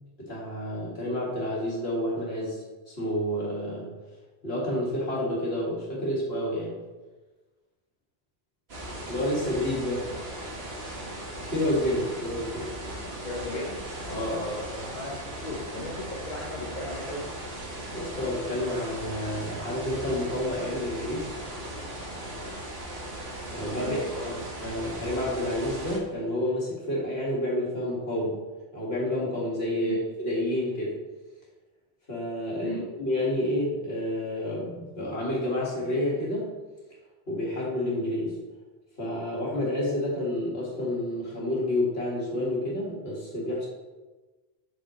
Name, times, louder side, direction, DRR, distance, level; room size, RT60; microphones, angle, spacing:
voice 1, 0.0-3.9 4.4-6.8 9.1-10.1 11.5-12.7 14.1-14.4 17.9-21.3 23.5-24.0 24.3-28.4 28.7-31.0 32.1-36.5 37.3-38.4 39.0-43.7, left 1 dB, 65° left, -4 dB, 2.2 m, -29 dB
sound 1, 8.7-26.0, right 1 dB, 70° right, 1.7 m, -38 dB
voice 2, 13.2-13.8 14.2-17.3 23.7-24.3 29.8-30.0 32.6-32.8, left 1 dB, 45° left, -3 dB, 1.1 m, -36 dB
7.6 x 6.1 x 3.1 m, 1.2 s
omnidirectional pair, 1.1 m